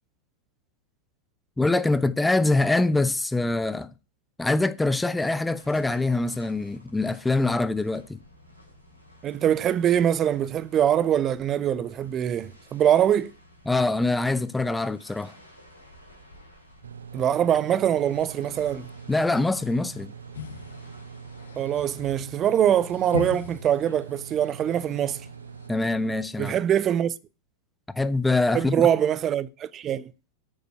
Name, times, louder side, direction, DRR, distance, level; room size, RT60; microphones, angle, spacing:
voice 1, 1.6-3.9 4.4-8.2 13.7-15.3 17.7-17.8 19.1-20.1 25.7-26.5 27.9-28.9, left 2 dB, 5° left, 0.7 m, -24 dB
sound 1, 5.6-22.2, left 1 dB, 85° right, 3.3 m, -53 dB
voice 2, 9.2-13.3 17.1-18.9 21.6-25.2 26.4-27.1 28.5-30.1, right 10 dB, 30° right, 0.7 m, -23 dB
sound 2, 16.8-26.2, right 6 dB, 70° right, 0.6 m, -43 dB
sound 3, 20.3-25.7, left 10 dB, 65° left, 1.1 m, -40 dB
8.9 x 6.9 x 6.5 m
figure-of-eight pair, 90°, 0 cm